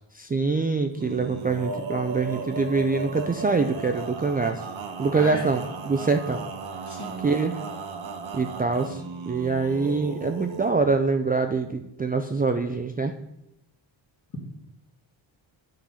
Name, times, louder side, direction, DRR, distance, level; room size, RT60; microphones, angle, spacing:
voice 1, 0.1-4.6 5.0-6.4 7.2-7.6 8.3-13.1, right 4 dB, 20° right, 5 dB, 0.4 m, -25 dB
Male singing, 0.9-10.7, right 4 dB, 85° right, 1.1 m, -36 dB
voice 2, 5.1-5.4 6.9-7.3, left 2 dB, 40° left, -1 dB, 1.8 m, -35 dB
9.9 x 3.9 x 5.6 m, 0.87 s
wide cardioid pair, 135°, 46 cm